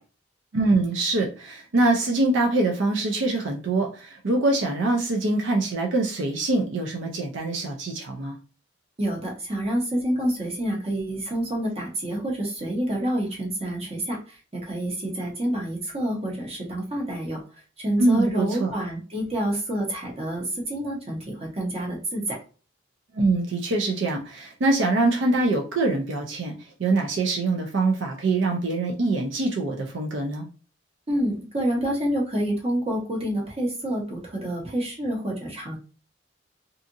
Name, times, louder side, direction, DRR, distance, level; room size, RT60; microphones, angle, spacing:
voice 1, 0.5-8.4 18.0-18.7 23.1-26.5 26.8-30.5, right 2 dB, 75° right, 1 dB, 0.5 m, -24 dB
voice 2, 9.0-17.4 17.8-22.4 31.1-35.8, right 1 dB, 35° right, -1 dB, 1.0 m, -28 dB
2.7 x 2.5 x 2.6 m, 0.36 s
head